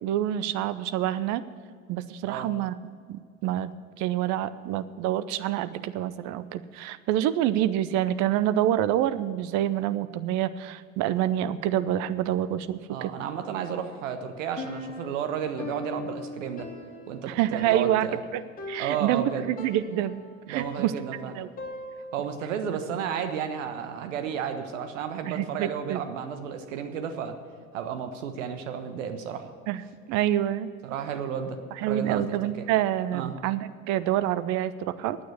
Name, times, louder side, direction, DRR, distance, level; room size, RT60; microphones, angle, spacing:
voice 1, 0.0-1.4 1.9-2.7 3.1-3.7 4.0-13.1 17.3-18.1 18.3-18.4 18.7-20.2 20.5-20.9 21.3-21.5 25.3-26.0 29.7-29.8 30.1-30.7 31.8-35.2, right 12 dB, 45° right, 14 dB, 0.7 m, -27 dB
voice 2, 12.9-16.7 17.1-18.2 18.8-19.5 20.5-21.3 22.1-27.4 27.7-29.5 30.8-32.7 33.1-33.3, right 7 dB, 65° right, 7 dB, 1.3 m, -32 dB
Piano, 14.6-22.4, left 2 dB, 20° left, 2.3 m, -40 dB
9.6 x 9.2 x 9.6 m, 2.1 s
figure-of-eight pair, 75°, 40 cm